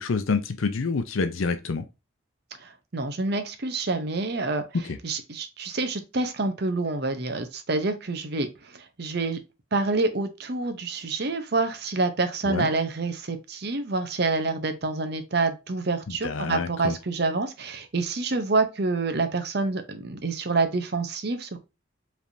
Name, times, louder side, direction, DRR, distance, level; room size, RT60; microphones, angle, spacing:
voice 1, 0.0-1.9 4.8-5.0 12.4-12.7 16.1-17.0, left 4 dB, 80° left, 0.6 m, -27 dB
voice 2, 2.6-4.6 5.0-9.4 9.7-21.6, right 3 dB, 50° right, 0.7 m, -27 dB
5.1 x 3.4 x 2.6 m
head